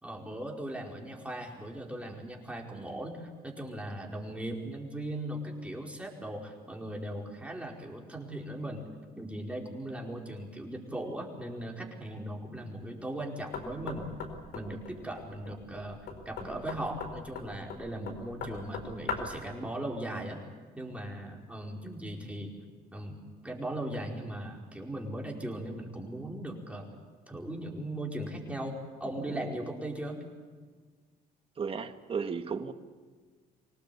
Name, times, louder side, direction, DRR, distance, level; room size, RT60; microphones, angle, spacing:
voice 1, 0.0-8.9 9.2-14.1 14.5-16.0 16.2-20.4 20.7-22.5 22.9-26.9 27.3-30.2, right 1 dB, 5° right, -1 dB, 4.8 m, -38 dB
Knock, 13.5-19.4, left 5 dB, 70° left, 4.5 m, -40 dB
voice 2, 31.6-32.7, right 5 dB, 35° right, 8 dB, 1.6 m, -34 dB
25.5 x 18.5 x 8.5 m, 1.5 s
cardioid pair, 110°, 17 cm